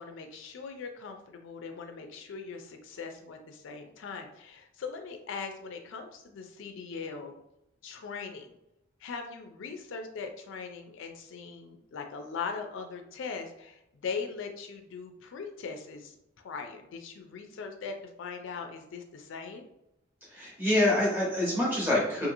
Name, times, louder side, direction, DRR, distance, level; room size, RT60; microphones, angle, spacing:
voice 1, 0.0-7.3 7.8-8.6 9.0-16.2 16.4-19.6, left 5 dB, 65° left, 5 dB, 0.4 m, -40 dB
voice 2, 20.3-22.3, left 1 dB, 10° right, -6 dB, 1.1 m, -26 dB
2.8 x 2.5 x 2.6 m, 0.85 s
head